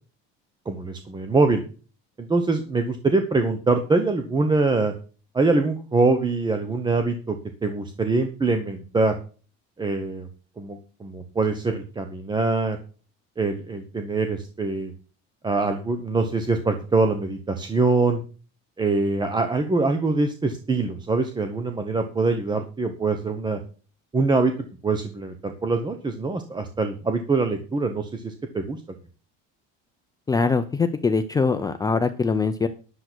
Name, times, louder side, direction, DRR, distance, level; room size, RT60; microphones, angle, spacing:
voice 1, 0.7-1.6 2.2-4.9 5.3-7.3 7.6-9.1 9.8-10.3 10.6-12.8 13.4-14.9 15.4-18.2 18.8-23.6 24.1-24.5 24.8-28.8, right 3 dB, 15° right, 7 dB, 1.0 m, -24 dB
voice 2, 30.3-32.7, left 4 dB, 10° left, 8 dB, 0.5 m, -22 dB
10.5 x 7.5 x 6.2 m, 0.37 s
cardioid pair, 170°, 30 cm